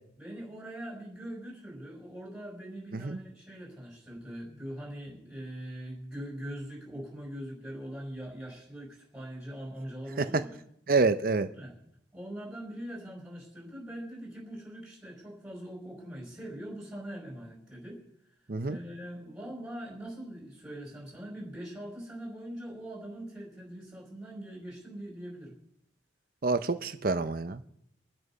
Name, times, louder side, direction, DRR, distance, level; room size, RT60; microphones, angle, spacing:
voice 1, 0.2-10.5 11.5-11.7 12.1-18.0 18.7-25.5, right 1 dB, 5° right, -2 dB, 4.9 m, -42 dB
voice 2, 10.9-11.5 18.5-18.8 26.4-27.6, right 3 dB, 50° right, 10 dB, 0.7 m, -27 dB
23.5 x 8.1 x 5.5 m, 0.73 s
head